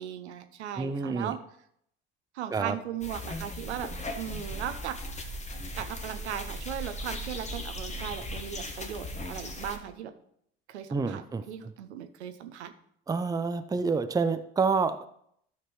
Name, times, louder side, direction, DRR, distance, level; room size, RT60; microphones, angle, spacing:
voice 1, 0.0-1.4 2.3-5.0 5.7-10.1 10.7-12.7, right 10 dB, 75° right, 10 dB, 0.7 m, -37 dB
voice 2, 0.8-1.4 2.5-2.8 10.9-11.7 13.1-15.1, right 4 dB, 10° right, 11 dB, 0.5 m, -28 dB
sound 1, 3.0-9.8, left 1 dB, 20° left, 1.2 m, -38 dB
12.5 x 5.9 x 3.2 m, 0.70 s
figure-of-eight pair, 55°, 34 cm